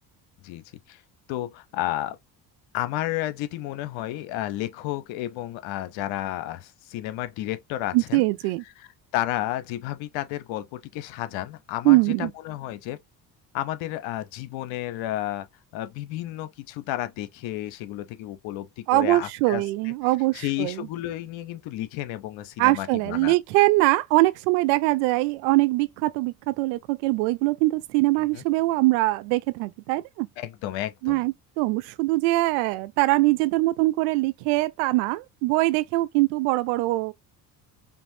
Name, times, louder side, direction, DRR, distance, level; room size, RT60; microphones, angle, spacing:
voice 1, 0.4-1.0 1.3-2.2 2.7-8.2 8.8-13.0 13.5-15.5 15.7-19.9 20.3-23.3 28.3-28.4 30.4-31.2, left 14 dB, 65° left, 0.9 m, -32 dB
voice 2, 7.9-8.6 11.8-12.3 18.9-20.9 22.6-30.3 31.0-37.1, right 20 dB, 70° right, 0.6 m, -22 dB
5.3 x 2.6 x 2.7 m
hypercardioid pair, 60°, 49 cm